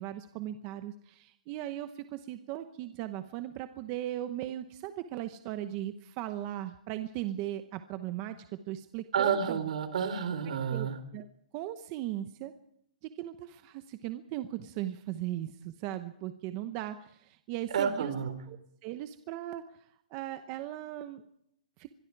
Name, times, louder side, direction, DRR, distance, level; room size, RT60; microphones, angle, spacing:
voice 1, 0.0-8.4 8.7-9.6 10.7-10.9 11.1-11.3 11.5-12.5 13.0-18.1 18.5-19.6 20.1-21.2 21.8-21.9, right 13 dB, 25° right, 10 dB, 0.9 m, -38 dB
voice 2, 9.1-11.0 17.7-18.3, right 7 dB, 65° right, 10 dB, 3.9 m, -30 dB
25.0 x 22.0 x 4.7 m, 0.73 s
hypercardioid pair, 165°, 4 cm